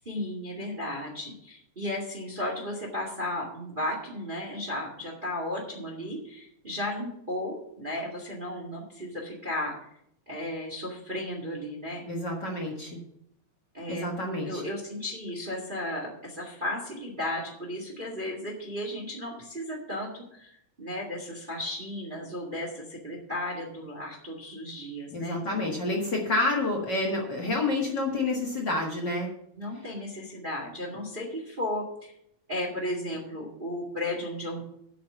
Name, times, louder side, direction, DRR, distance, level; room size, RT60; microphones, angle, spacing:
voice 1, 0.0-9.7 10.3-12.0 13.7-14.1 14.4-20.5 20.8-25.4 29.6-32.1 32.5-34.6, left 1 dB, 20° right, -1 dB, 1.7 m, -34 dB
voice 2, 12.0-13.0 13.9-14.6 25.1-29.3, left 2 dB, 45° left, -1 dB, 1.9 m, -29 dB
8.5 x 6.1 x 7.9 m, 0.72 s
omnidirectional pair, 3.4 m